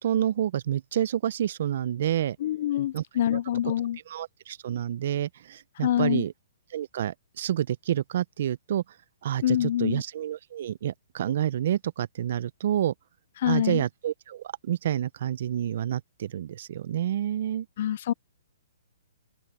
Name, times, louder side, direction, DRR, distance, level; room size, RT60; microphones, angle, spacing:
voice 1, 0.0-2.4 2.9-3.0 4.1-6.3 6.7-8.8 9.2-12.9 13.5-17.7, right 11 dB, 60° right, 0.9 m, -28 dB
voice 2, 2.4-4.0 5.8-6.3 9.4-10.0 13.4-13.8 17.8-18.1, left 11 dB, 55° left, 0.6 m, -26 dB
open air
hypercardioid pair, 135°, 0 cm